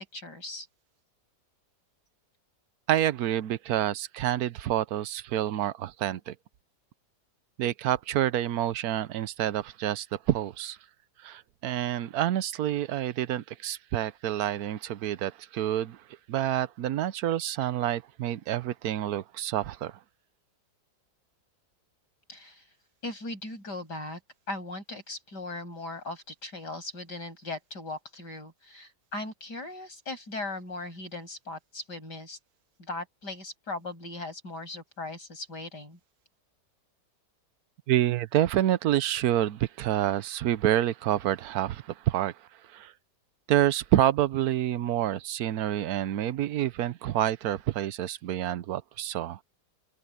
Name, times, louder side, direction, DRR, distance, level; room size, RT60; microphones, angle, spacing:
voice 1, 0.1-0.7 22.3-22.7 23.0-24.2 24.5-32.4 32.8-36.0, left 2 dB, 75° left, 8.2 m, -38 dB
voice 2, 2.9-6.3 7.6-10.8 11.2-16.0 16.3-20.0 37.9-42.4 42.7-42.9 43.5-49.4, right 12 dB, 65° right, 1.2 m, -28 dB
omnidirectional pair, 1.8 m